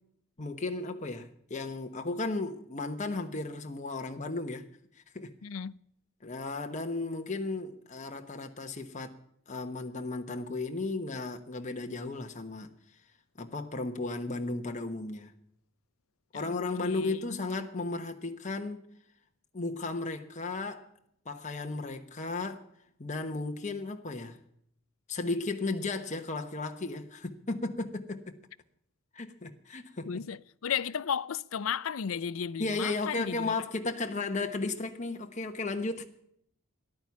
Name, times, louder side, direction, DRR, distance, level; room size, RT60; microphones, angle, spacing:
voice 1, 0.4-4.6 5.1-5.3 6.2-9.1 9.5-12.7 13.4-15.3 16.3-18.8 19.5-20.9 21.2-22.6 23.0-24.4 25.1-28.4 29.1-30.2 32.6-36.1, left 3 dB, 35° left, 1.1 m, -35 dB
voice 2, 5.4-5.7 16.3-17.4 30.1-33.6, left 7 dB, 85° left, 0.5 m, -34 dB
14.0 x 11.0 x 7.1 m
head